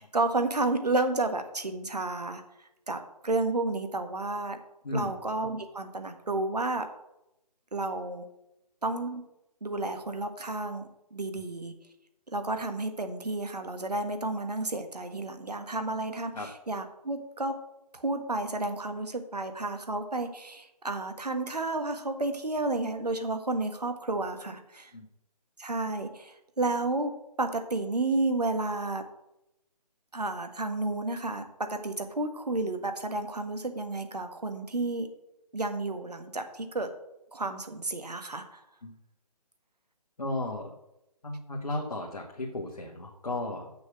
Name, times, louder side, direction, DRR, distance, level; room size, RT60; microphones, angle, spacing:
voice 1, 0.0-2.4 2.9-4.6 4.9-6.9 7.7-8.3 8.8-9.2 9.6-11.7 12.3-16.3 16.7-17.5 17.9-24.9 25.6-27.1 27.4-29.0 30.1-35.1 35.5-36.9 37.3-38.6, right 2 dB, 70° right, 7 dB, 1.6 m, -31 dB
voice 2, 4.8-5.2 11.3-11.5 16.3-16.5 24.9-25.1 38.8-38.9 40.2-40.7 41.2-43.7, left 2 dB, 65° left, 0 dB, 1.6 m, -35 dB
7.1 x 6.4 x 7.3 m, 0.87 s
figure-of-eight pair, 145°, 21 cm